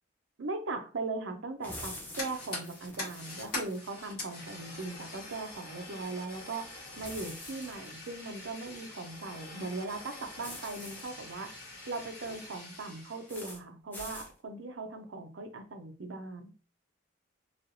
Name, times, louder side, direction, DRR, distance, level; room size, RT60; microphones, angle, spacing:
voice 1, 0.4-6.7 7.0-11.5 11.9-16.5, right 3 dB, 70° right, 6 dB, 0.6 m, -39 dB
sound 1, 1.6-3.8 7.0-7.9 10.4-11.0 13.3-13.6 13.9-14.3, left 1 dB, 10° left, 0.7 m, -45 dB
Fire, 1.8-13.4, left 2 dB, 50° left, 1.5 m, -44 dB
3.2 x 2.8 x 2.6 m, 0.37 s
head